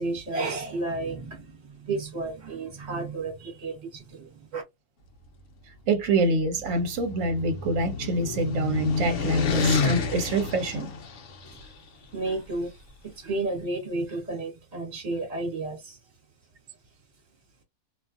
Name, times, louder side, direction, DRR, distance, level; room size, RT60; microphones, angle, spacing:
voice 1, 0.0-4.6 12.1-12.7 13.0-16.0, right 2 dB, 30° right, 1.2 m, -32 dB
voice 2, 5.9-10.9, right 2 dB, 65° right, 1.0 m, -26 dB
sound 1, 6.4-11.6, left 4 dB, 60° left, 0.9 m, -29 dB
2.6 x 2.4 x 2.4 m
omnidirectional pair, 1.6 m